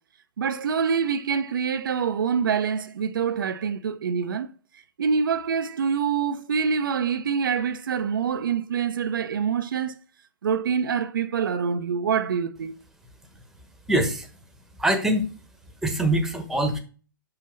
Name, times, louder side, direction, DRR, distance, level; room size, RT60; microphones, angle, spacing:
voice 1, 0.4-4.5 5.0-9.9 10.4-12.7, right 6 dB, 75° right, 0.6 m, -25 dB
voice 2, 13.9-14.3 14.8-15.3 15.8-16.8, right 1 dB, 5° right, 1.2 m, -23 dB
5.7 x 5.3 x 5.1 m
hypercardioid pair, 125°, 11 cm